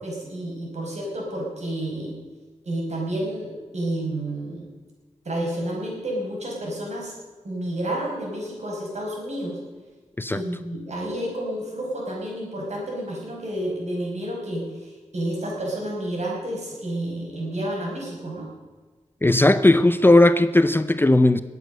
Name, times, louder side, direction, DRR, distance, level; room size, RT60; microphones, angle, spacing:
voice 1, 0.0-2.1 2.6-4.7 5.3-7.1 7.4-9.6 10.3-18.5, right 1 dB, 65° right, -2 dB, 5.4 m, -30 dB
voice 2, 19.2-21.4, left 2 dB, 15° left, 12 dB, 0.5 m, -17 dB
21.0 x 8.2 x 6.5 m, 1.4 s
wide cardioid pair, 110°, 12 cm